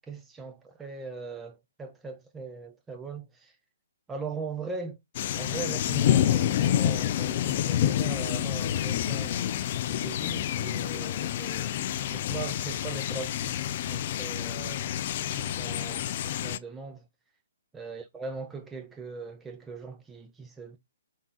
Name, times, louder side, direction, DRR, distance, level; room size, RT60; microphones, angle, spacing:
voice 1, 0.0-3.6 4.1-5.0 5.3-11.8 12.1-15.0 15.3-17.1 17.7-20.8, right 4 dB, 10° right, 0.7 m, -40 dB
sound 1, 5.1-16.6, left 11 dB, 45° left, 0.3 m, -28 dB
3.7 x 3.7 x 2.6 m
figure-of-eight pair, 130°, 0 cm